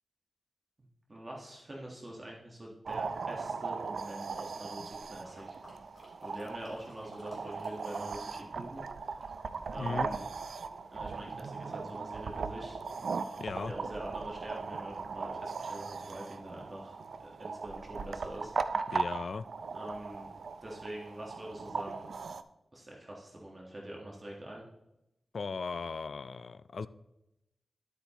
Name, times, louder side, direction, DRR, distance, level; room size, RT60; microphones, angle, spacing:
voice 1, 0.8-5.6 6.2-8.8 9.1-9.2 9.7-10.3 10.9-12.8 13.4-17.0 17.2-18.5 19.7-20.3 20.6-22.2 22.7-24.6, right 1 dB, 25° right, -2 dB, 1.3 m, -44 dB
sound 1, 2.8-22.4, right 5 dB, 70° right, 0.4 m, -38 dB
sound 2, 5.2-8.5 8.7-10.2 10.7-10.8, left 1 dB, 20° left, 3.2 m, -54 dB
voice 2, 9.8-10.1 13.4-13.7 18.9-19.4 25.3-26.9, left 4 dB, 55° left, 14 dB, 0.3 m, -37 dB
11.0 x 8.2 x 2.9 m, 0.89 s
wide cardioid pair, 160°, 0 cm